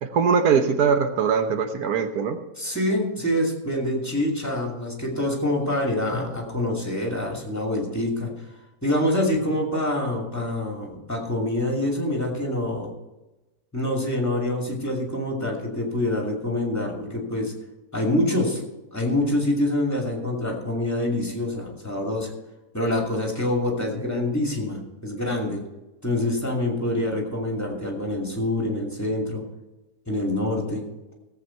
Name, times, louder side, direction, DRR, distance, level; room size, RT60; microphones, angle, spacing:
voice 1, 0.0-2.4, right 6 dB, 90° right, 7 dB, 1.5 m, -21 dB
voice 2, 2.6-8.3 8.8-12.9 13.7-17.5 17.9-18.6 18.9-22.3 22.7-25.6 26.0-29.4 30.1-30.8, left 1 dB, 10° left, -1 dB, 2.5 m, -26 dB
16.5 x 8.0 x 4.5 m, 1.0 s
omnidirectional pair, 1.5 m